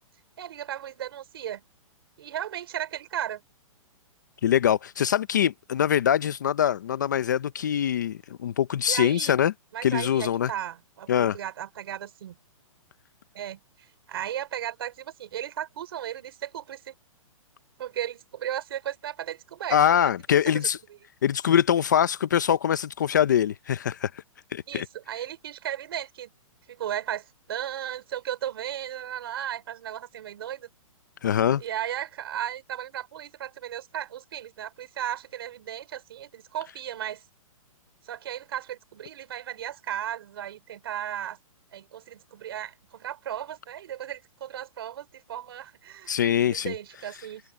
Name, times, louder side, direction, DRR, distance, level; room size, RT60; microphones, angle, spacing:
voice 1, 0.4-1.6 2.2-3.4 8.9-9.4 9.7-12.4 13.3-16.9 17.8-20.1 24.7-26.3 26.7-30.7 31.6-37.2 38.0-41.4 41.7-47.4, right 11 dB, 45° right, 5.1 m, -35 dB
voice 2, 4.4-9.5 9.8-10.5 11.1-11.4 19.7-20.8 21.2-24.1 24.5-24.9 31.2-31.6 46.1-46.7, left 9 dB, 35° left, 0.5 m, -23 dB
hypercardioid pair, 175°, 18 cm